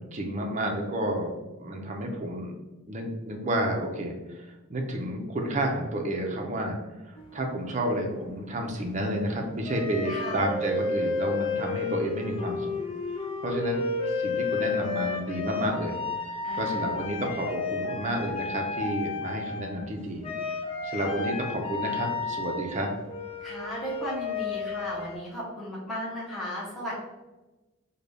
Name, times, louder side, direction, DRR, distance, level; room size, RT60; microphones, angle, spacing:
voice 1, 0.0-1.3 1.6-2.5 2.9-6.8 7.0-12.7 13.4-16.0 16.6-20.3 20.8-22.9, right 1 dB, 35° right, 2 dB, 0.5 m, -30 dB
sound 1, 7.2-8.4 9.6-19.9 20.2-25.2, left 4 dB, 25° left, 0.4 m, -32 dB
voice 2, 10.1-10.5 16.4-16.9 23.4-27.0, equal, ahead, -9 dB, 0.8 m, -36 dB
3.8 x 2.2 x 3.3 m, 1.1 s
head